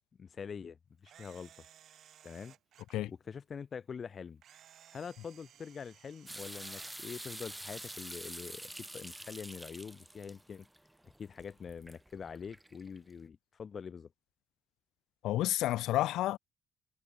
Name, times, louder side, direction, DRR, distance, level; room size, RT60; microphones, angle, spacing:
voice 1, 0.2-1.5 2.2-2.5 3.1-4.4 4.9-10.7 11.2-14.1, left 6 dB, 45° left, 2.6 m, -45 dB
Camera, 1.0-3.0 4.4-6.9, right 10 dB, 70° right, 3.2 m, -58 dB
sound 1, 6.3-13.1, right 1 dB, 10° right, 0.7 m, -47 dB
voice 2, 15.2-16.4, left 15 dB, 90° left, 0.5 m, -30 dB
cardioid pair, 90°, 0 cm